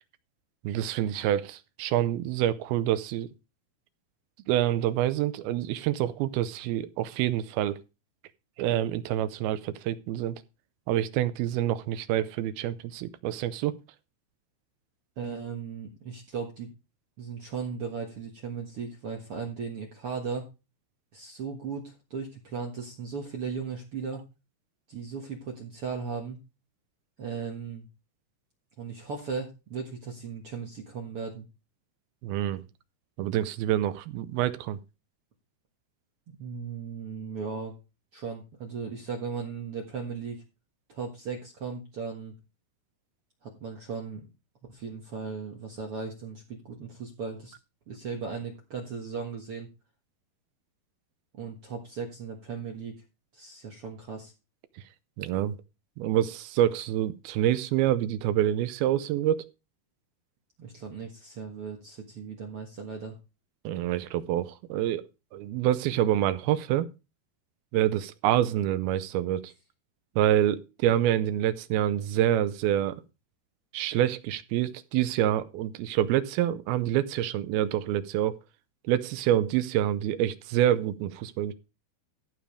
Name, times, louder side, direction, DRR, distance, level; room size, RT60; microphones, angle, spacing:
voice 1, 0.6-3.3 4.5-7.8 8.6-10.4 10.9-13.7 32.2-32.6 33.2-34.8 55.2-55.5 56.0-59.5 63.6-65.0 65.3-66.9 67.7-69.5 70.2-73.0 73.7-78.4 78.9-81.5, right 12 dB, 80° right, 2.4 m, -27 dB
voice 2, 15.2-16.7 17.2-20.5 21.1-24.2 24.9-26.4 27.2-27.9 28.8-31.4 36.3-37.7 38.1-40.4 40.9-42.3 43.4-44.3 44.7-47.5 47.9-49.7 51.4-53.0 53.3-54.3 60.6-63.1, right 5 dB, 60° right, 1.5 m, -37 dB
14.5 x 5.1 x 5.0 m
omnidirectional pair, 4.8 m